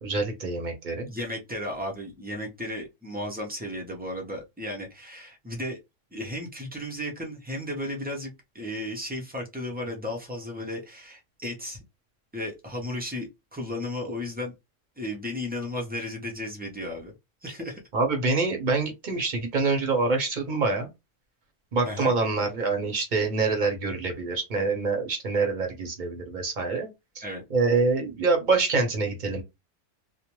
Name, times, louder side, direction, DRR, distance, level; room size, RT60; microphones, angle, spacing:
voice 1, 0.0-1.1 17.9-20.9 21.7-26.9 27.2-27.3 27.5-29.4, right 3 dB, 45° right, 0.8 m, -25 dB
voice 2, 1.1-5.8 6.1-11.8 12.3-14.6 15.0-17.1 17.4-17.8 21.8-22.1 27.2-27.4, left 1 dB, 15° right, 0.4 m, -34 dB
2.5 x 2.1 x 3.0 m
omnidirectional pair, 1.3 m